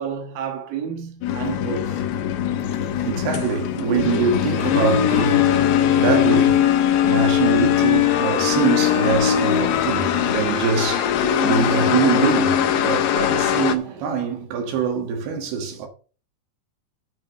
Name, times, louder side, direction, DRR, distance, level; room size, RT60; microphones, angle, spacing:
voice 1, 0.0-2.0, right 8 dB, 45° right, 2.6 m, -30 dB
sound 1, 1.2-10.5, left 14 dB, 85° left, 2.9 m, -28 dB
sound 2, 1.3-13.8, left 9 dB, 70° left, 2.5 m, -21 dB
voice 2, 2.6-15.9, right 6 dB, 75° right, 3.5 m, -24 dB
9.0 x 5.0 x 6.5 m
omnidirectional pair, 4.7 m